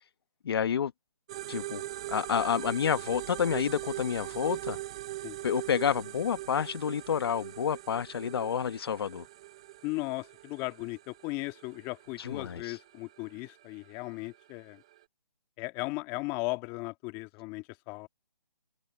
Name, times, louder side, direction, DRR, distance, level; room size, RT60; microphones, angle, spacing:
voice 1, 0.4-0.9 1.5-1.8 2.1-4.8 5.4-9.2 12.2-12.8, left 8 dB, 40° left, 1.4 m, -29 dB
sound 1, 1.3-15.0, right 16 dB, 10° right, 0.5 m, -42 dB
voice 2, 9.8-14.8 15.6-18.1, left 24 dB, 15° left, 1.8 m, -37 dB
open air
hypercardioid pair, 160°, 20 cm